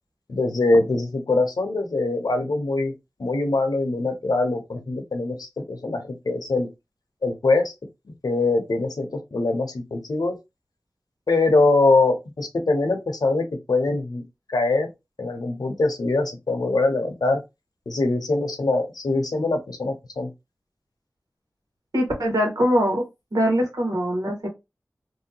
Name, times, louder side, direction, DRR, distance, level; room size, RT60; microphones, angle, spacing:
voice 1, 0.3-2.9 3.2-6.7 7.2-7.7 8.2-10.4 11.3-14.2 14.5-14.9 15.2-17.4 17.9-20.3, left 2 dB, 80° left, 0.8 m, -23 dB
voice 2, 21.9-23.0 23.3-24.5, equal, 75° right, 1.7 m, -22 dB
3.1 x 2.8 x 2.9 m
wide cardioid pair, 50°, 7 cm